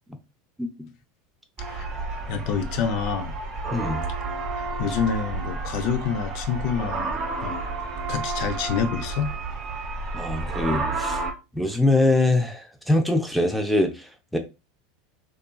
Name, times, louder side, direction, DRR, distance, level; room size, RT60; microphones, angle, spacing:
sound 1, 1.6-11.3, right 3 dB, 35° right, 0.9 m, -31 dB
voice 1, 2.3-3.4 4.5-7.2 7.4-7.7 8.1-9.3, left 7 dB, 60° left, 0.4 m, -27 dB
voice 2, 3.7-4.0 10.1-11.2 11.5-14.4, left 2 dB, ahead, 0.5 m, -23 dB
2.7 x 2.4 x 2.2 m
supercardioid pair, 120°, 0 cm